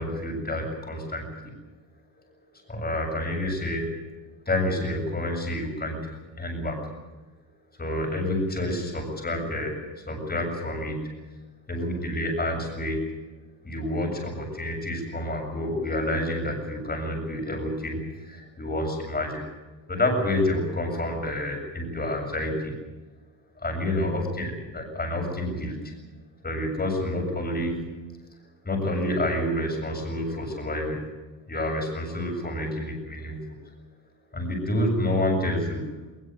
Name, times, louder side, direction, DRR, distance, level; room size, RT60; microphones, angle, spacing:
voice 1, 0.0-1.5 2.7-3.9 4.5-6.9 7.8-11.0 11.7-13.1 13.6-19.4 19.9-22.7 23.6-25.9 26.4-28.0 28.6-31.0 31.5-33.6 34.3-35.9, left 1 dB, 20° left, 2 dB, 7.3 m, -28 dB
21.0 x 20.5 x 8.0 m, 1.1 s
cardioid pair, 110°, 44 cm